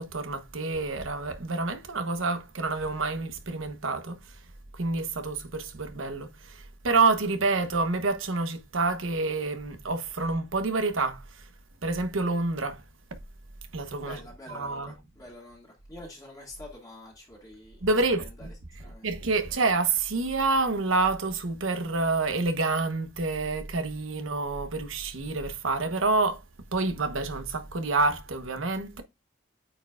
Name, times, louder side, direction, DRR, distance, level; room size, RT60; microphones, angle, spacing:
voice 1, 0.0-4.2 4.8-11.2 11.8-12.8 13.7-14.2 14.5-14.9 17.8-18.5 19.0-26.4 26.7-29.0, right 3 dB, 80° right, 1.1 m, -28 dB
voice 2, 14.0-17.9 18.2-18.5 18.8-19.1, left 1 dB, 20° left, 2.2 m, -47 dB
8.7 x 4.6 x 2.4 m
head